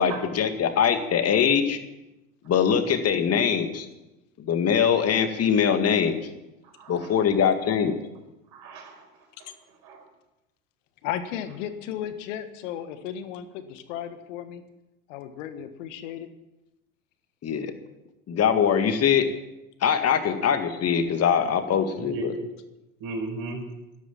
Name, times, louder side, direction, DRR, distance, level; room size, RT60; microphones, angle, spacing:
voice 1, 0.0-1.8 2.5-3.9 4.4-6.2 6.9-8.0 17.4-17.7 18.3-19.3 19.8-22.3, left 7 dB, 35° left, 8 dB, 2.0 m, -22 dB
voice 2, 6.8-7.1 8.5-9.0 9.4-9.5 9.8-10.0 21.9-22.3 23.0-23.6, right 2 dB, 55° right, 3 dB, 5.0 m, -35 dB
voice 3, 11.0-14.6 15.1-16.3, left 10 dB, 65° left, 10 dB, 1.6 m, -34 dB
12.5 x 12.0 x 7.2 m, 0.97 s
hypercardioid pair, 75°, 41 cm